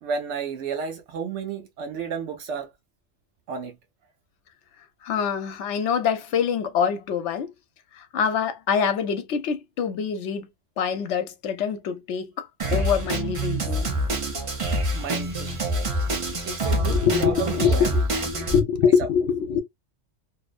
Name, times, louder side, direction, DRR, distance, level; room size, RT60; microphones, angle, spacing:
voice 1, 0.0-2.7 3.5-3.8 14.9-15.6 16.4-17.9 18.8-18.9, right 5 dB, 80° right, 0.9 m, -32 dB
voice 2, 5.0-7.5 8.0-10.5 10.8-14.0 16.9-18.0 18.3-19.6, left 7 dB, 80° left, 1.0 m, -25 dB
Drum kit, 12.6-18.6, right 1 dB, 35° right, 0.6 m, -26 dB
2.6 x 2.1 x 2.3 m
omnidirectional pair, 1.2 m